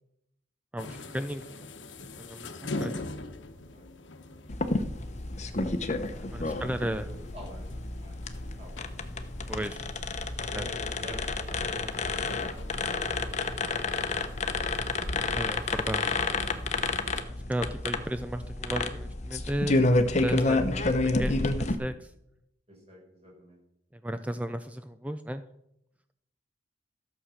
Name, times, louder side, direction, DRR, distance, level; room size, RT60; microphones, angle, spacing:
voice 1, 0.7-1.7 2.2-3.0 6.2-7.1 9.5-9.9 10.5-10.6 15.3-16.4 17.3-19.8 20.2-22.1 23.9-25.4, right 1 dB, 10° right, 9 dB, 0.4 m, -34 dB
sound 1, 0.8-17.2, left 2 dB, 90° left, 1.1 m, -44 dB
sound 2, 4.5-21.7, left 3 dB, 40° left, 0.9 m, -30 dB
voice 2, 6.3-9.0 10.4-15.5 22.7-23.6, equal, 35° right, -2 dB, 5.4 m, -48 dB
13.0 x 7.4 x 6.3 m, 0.80 s
head